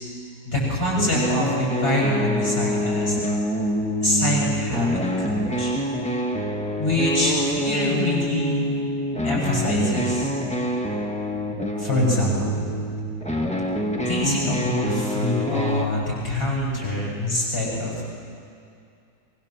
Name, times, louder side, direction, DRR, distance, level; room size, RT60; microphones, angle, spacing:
voice 1, 0.5-3.2 4.0-5.7 6.8-8.7 9.2-10.3 11.8-12.7 14.1-17.9, left 1 dB, 30° left, -5 dB, 7.3 m, -24 dB
sound 1, 1.0-15.9, equal, 5° left, 1.4 m, -26 dB
23.0 x 22.5 x 7.4 m, 2.4 s
omnidirectional pair, 2.0 m